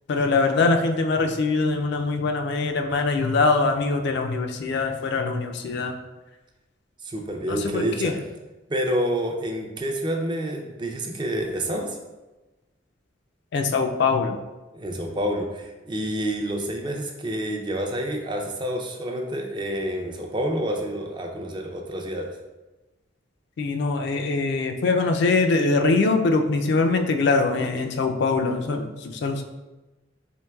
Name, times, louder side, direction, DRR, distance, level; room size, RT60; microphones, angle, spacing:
voice 1, 0.1-5.9 7.5-8.1 13.5-14.4 23.6-29.4, left 3 dB, 65° left, 5 dB, 0.4 m, -23 dB
voice 2, 7.0-8.1 8.7-12.0 14.7-22.3, right 1 dB, 25° right, 2 dB, 0.4 m, -28 dB
4.5 x 2.9 x 2.3 m, 1.1 s
head